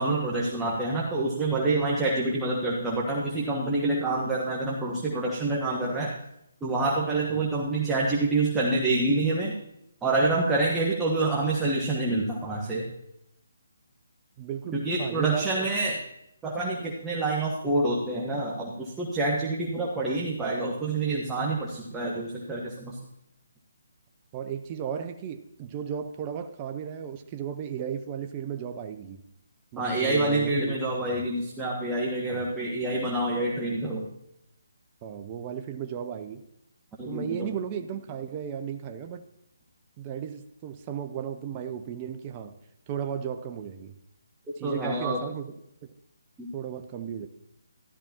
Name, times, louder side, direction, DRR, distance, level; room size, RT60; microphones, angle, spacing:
voice 1, 0.0-6.1 6.6-9.5 10.0-12.9 14.7-16.0 16.4-23.0 29.8-34.0 37.0-37.5 44.6-45.2 46.4-46.5, right 2 dB, 10° right, -4 dB, 1.2 m, -27 dB
voice 2, 14.4-15.7 24.3-29.2 29.7-31.0 32.3-32.5 35.0-36.4 37.1-39.3 40.0-42.5 42.9-43.9 44.6-45.5 45.8-45.9 46.5-47.3, right 8 dB, 25° right, 7 dB, 0.6 m, -35 dB
13.5 x 12.0 x 2.9 m, 0.82 s
figure-of-eight pair, 150°, 0 cm